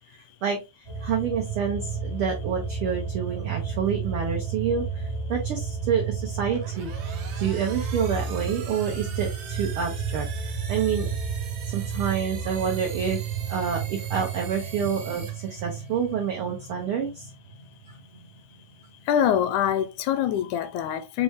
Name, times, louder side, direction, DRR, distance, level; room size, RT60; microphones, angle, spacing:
sound 1, 0.8-18.4 18.7-18.8, right 6 dB, 45° right, 0.8 m, -32 dB
voice 1, 1.0-11.1 11.7-17.3, right 7 dB, 85° right, 1.2 m, -28 dB
sound 2, 6.3-16.1, right 7 dB, 65° right, 2.3 m, -43 dB
voice 2, 19.1-21.2, left 9 dB, 80° left, 1.8 m, -24 dB
5.9 x 2.1 x 3.5 m
omnidirectional pair, 3.6 m